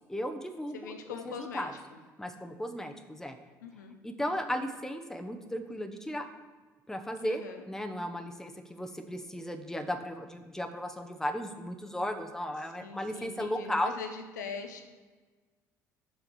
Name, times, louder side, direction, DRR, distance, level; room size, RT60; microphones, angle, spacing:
voice 1, 0.1-1.7 2.2-3.4 4.0-6.3 6.9-13.9, equal, 5° left, 6 dB, 0.9 m, -35 dB
voice 2, 0.7-2.0 3.6-4.0 7.2-7.6 12.6-14.8, left 6 dB, 75° left, 6 dB, 0.8 m, -42 dB
7.2 x 5.1 x 6.2 m, 1.4 s
figure-of-eight pair, 55°, 10 cm